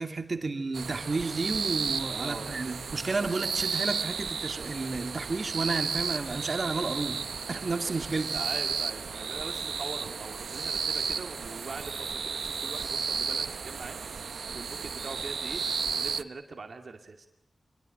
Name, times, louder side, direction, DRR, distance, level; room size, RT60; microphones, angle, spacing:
voice 1, 0.0-8.4, right 3 dB, 40° right, 6 dB, 2.7 m, -32 dB
sound 1, 0.7-16.2, right 5 dB, 85° right, 1.0 m, -33 dB
voice 2, 2.2-2.5 8.3-15.6 15.9-17.3, right 4 dB, 60° right, 5 dB, 2.3 m, -42 dB
27.0 x 22.0 x 9.0 m, 0.77 s
wide cardioid pair, 140°, 0 cm